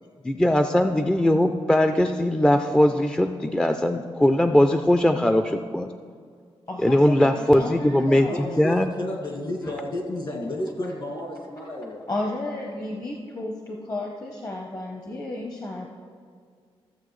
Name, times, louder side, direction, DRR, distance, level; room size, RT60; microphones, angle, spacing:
voice 1, 0.2-5.9 6.8-8.9, left 1 dB, 5° left, 7 dB, 0.3 m, -20 dB
voice 2, 6.7-8.5 12.1-15.9, left 2 dB, 35° left, 0 dB, 0.9 m, -32 dB
voice 3, 8.1-12.1, left 1 dB, 50° left, 1 dB, 1.9 m, -32 dB
15.0 x 7.4 x 3.2 m, 2.1 s
cardioid pair, 95°, 10 cm